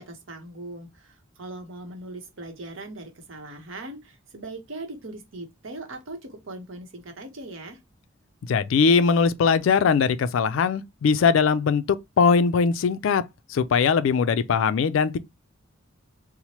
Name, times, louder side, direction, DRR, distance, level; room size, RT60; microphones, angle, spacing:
voice 1, 0.0-7.8, right 2 dB, 70° right, 0.8 m, -40 dB
voice 2, 8.5-13.2 13.5-15.2, left 5 dB, 70° left, 0.3 m, -21 dB
3.0 x 2.0 x 2.8 m
head